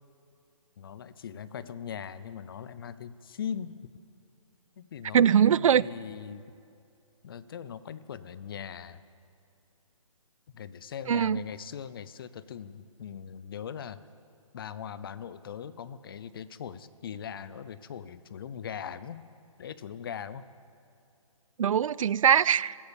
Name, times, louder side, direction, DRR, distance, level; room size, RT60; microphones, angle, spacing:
voice 1, 0.8-3.8 4.8-6.4 7.2-9.0 10.5-14.0 14.5-19.2 19.6-20.4, left 8 dB, 40° left, 15 dB, 0.6 m, -40 dB
voice 2, 5.1-5.8 11.1-11.4 21.6-22.8, right 8 dB, 70° right, 22 dB, 0.4 m, -22 dB
14.5 x 14.0 x 7.0 m, 2.6 s
hypercardioid pair, 155°, 18 cm